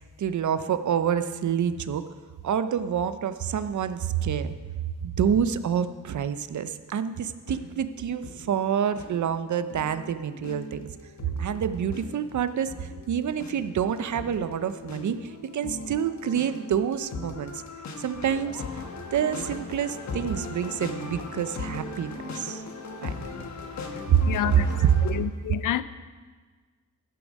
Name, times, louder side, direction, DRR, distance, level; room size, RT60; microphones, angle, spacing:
voice 1, 0.2-2.0 2.4-4.5 5.0-10.9 11.4-17.6 18.0-18.6 19.1-22.6 23.0-23.1 24.1-24.2 24.6-24.9, right 8 dB, 65° right, 0.6 m, -27 dB
sound 1, 7.4-25.1, left 4 dB, 60° left, 1.3 m, -39 dB
voice 2, 24.2-24.7 25.0-25.8, left 11 dB, 75° left, 0.5 m, -28 dB
13.5 x 7.0 x 5.3 m
cardioid pair, 85°, 32 cm